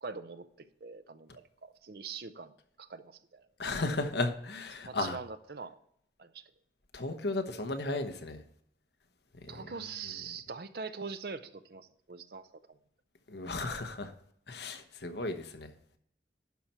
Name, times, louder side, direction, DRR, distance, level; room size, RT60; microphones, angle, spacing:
voice 1, 0.0-2.5 2.8-3.5 4.8-5.8 6.2-6.4 9.5-12.8, right 5 dB, 60° right, 11 dB, 0.6 m, -43 dB
voice 2, 3.6-5.2 6.9-8.4 9.4-9.7 13.3-14.1 14.5-15.7, left 2 dB, 75° left, 7 dB, 1.0 m, -35 dB
11.5 x 4.3 x 5.8 m, 0.69 s
head